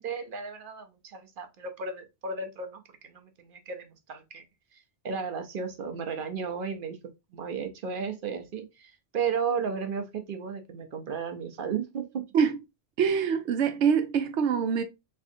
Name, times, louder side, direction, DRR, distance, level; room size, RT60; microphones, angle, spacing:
voice 1, 0.0-4.4 4.7-7.0 7.3-12.2, right 6 dB, 55° right, 0.8 m, -34 dB
voice 2, 13.0-14.8, right 7 dB, 90° right, 1.0 m, -24 dB
3.6 x 3.3 x 2.6 m
omnidirectional pair, 1.2 m